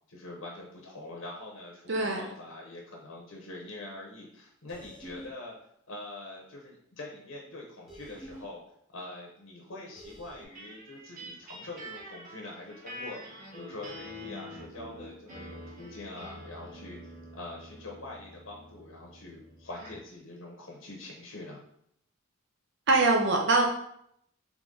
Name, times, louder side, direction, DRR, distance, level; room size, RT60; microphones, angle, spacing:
voice 1, 0.1-5.5 5.9-8.6 8.9-13.2 13.5-21.6, left 2 dB, 70° left, -1 dB, 0.8 m, -44 dB
voice 2, 1.9-2.2 22.9-23.7, right 3 dB, 55° right, 1 dB, 0.6 m, -23 dB
sound 1, 4.7-5.3 7.9-8.5 10.0-10.5, right 1 dB, ahead, 0.9 m, -47 dB
sound 2, 10.6-20.1, equal, 40° right, 1.3 m, -46 dB
3.7 x 3.4 x 3.8 m, 0.72 s
head